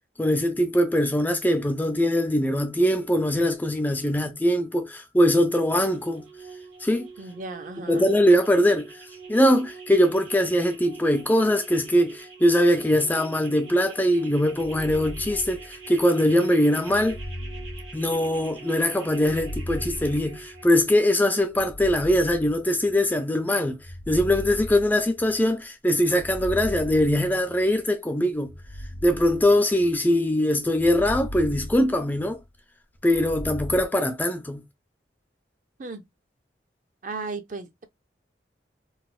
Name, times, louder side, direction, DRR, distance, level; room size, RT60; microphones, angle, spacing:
voice 1, 0.2-6.3 6.8-7.1 7.9-8.9 9.3-17.2 17.9-23.8 24.1-28.5 29.0-32.4 33.0-34.6, equal, 10° left, 0.4 m, -22 dB
sound 1, 5.6-20.6, right 5 dB, 80° right, 1.7 m, -44 dB
voice 2, 7.2-8.1 35.8-36.1 37.0-37.8, right 3 dB, 45° right, 0.5 m, -35 dB
sound 2, 14.5-16.0 16.9-18.6 19.1-20.9 21.5-23.0 23.7-25.5 26.0-27.7 28.4-30.1 30.7-32.5 33.0-33.9, equal, 55° left, 0.6 m, -38 dB
4.0 x 2.1 x 2.3 m
head